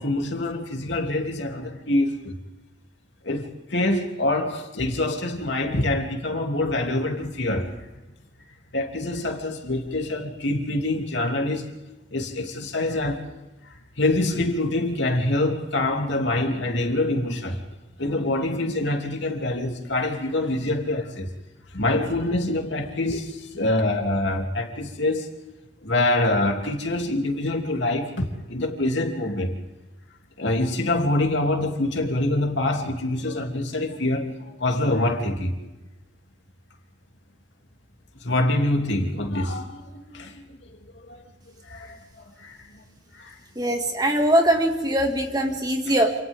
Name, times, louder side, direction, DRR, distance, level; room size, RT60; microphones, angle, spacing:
voice 1, 0.0-2.4 3.2-7.7 8.7-11.7 12.1-13.2 14.0-17.6 18.0-21.3 21.7-25.3 25.8-29.6 30.4-34.3 34.6-35.5 38.2-39.8 40.1-40.4 41.1-41.2 41.7-42.0 42.4-42.6 43.2-43.3 45.9-46.0, left 2 dB, 65° left, 2 dB, 3.1 m, -25 dB
voice 2, 43.6-46.1, right 1 dB, 20° right, 3 dB, 2.3 m, -21 dB
28.5 x 28.0 x 3.7 m, 1.1 s
head